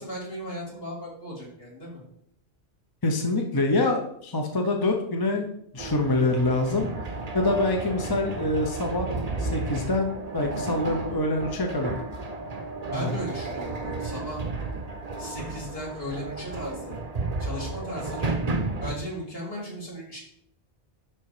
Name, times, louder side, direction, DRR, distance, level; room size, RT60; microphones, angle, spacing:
voice 1, 0.0-2.0 12.9-14.4 15.2-17.0 17.4-18.3 18.8-20.2, equal, 60° left, -4 dB, 3.3 m, -36 dB
voice 2, 3.0-5.5 5.7-6.9 7.3-9.1 9.4-11.9 12.9-13.1, left 2 dB, 20° left, 2 dB, 0.9 m, -25 dB
sound 1, 5.8-18.9, right 3 dB, 40° right, 1.0 m, -33 dB
11.5 x 4.1 x 5.0 m, 0.71 s
omnidirectional pair, 1.1 m